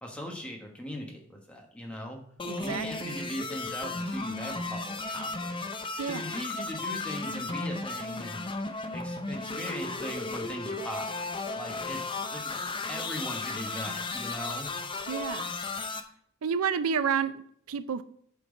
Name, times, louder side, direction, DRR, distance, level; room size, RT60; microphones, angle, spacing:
voice 1, 0.0-2.2 2.6-5.6 6.1-8.4 8.9-12.6 12.9-14.7, equal, 5° left, 0 dB, 1.3 m, -39 dB
sound 1, 2.4-16.0, left 3 dB, 25° left, 0.6 m, -35 dB
voice 2, 2.5-3.2 6.0-6.3 15.1-15.5 16.4-18.0, right 6 dB, 85° right, 13 dB, 0.5 m, -30 dB
8.4 x 4.5 x 5.3 m, 0.63 s
head